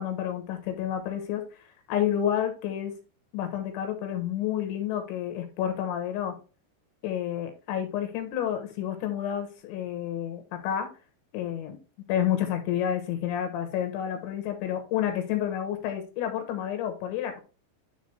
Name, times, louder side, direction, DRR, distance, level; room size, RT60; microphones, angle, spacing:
voice 1, 0.0-1.4 1.9-2.9 3.3-6.4 7.0-10.9 11.3-11.8 12.1-17.4, left 10 dB, 80° left, 6 dB, 3.5 m, -30 dB
11.0 x 3.8 x 3.3 m, 0.34 s
omnidirectional pair, 5.3 m